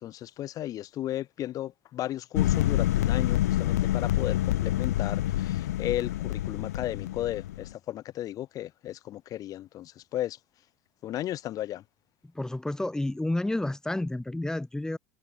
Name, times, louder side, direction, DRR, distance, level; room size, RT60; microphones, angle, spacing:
voice 1, 0.0-10.4 11.0-11.8, left 13 dB, 45° left, 1.1 m, -35 dB
sound 1, 2.3-7.7, left 14 dB, 75° left, 0.5 m, -27 dB
voice 2, 12.3-15.0, left 1 dB, 5° left, 3.9 m, -30 dB
hypercardioid pair, 80°, 9 cm